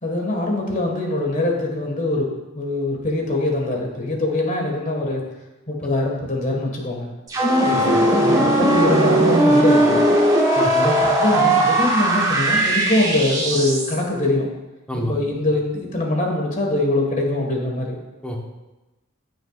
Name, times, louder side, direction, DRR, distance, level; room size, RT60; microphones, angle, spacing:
voice 1, 0.0-2.3 2.5-5.2 5.7-7.1 8.1-10.0 11.0-14.5 14.9-18.0, left 2 dB, 40° left, 1 dB, 1.8 m, -23 dB
sound 1, 7.3-14.0, right 1 dB, 20° right, 1.3 m, -18 dB
voice 2, 7.7-8.4 10.6-10.9 14.9-15.1 18.2-18.4, equal, 5° left, 0 dB, 1.1 m, -28 dB
14.5 x 6.4 x 2.5 m, 1.1 s
head